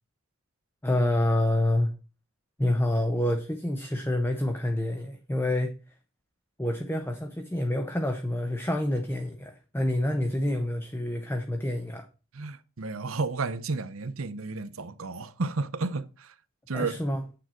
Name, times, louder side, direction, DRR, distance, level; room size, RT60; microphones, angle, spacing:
voice 1, 0.8-1.9 2.6-5.7 6.6-12.1 16.7-17.2, left 1 dB, 10° left, 0.8 m, -27 dB
voice 2, 12.3-16.3 16.7-17.0, right 3 dB, 70° right, 0.8 m, -32 dB
9.0 x 4.7 x 7.5 m
head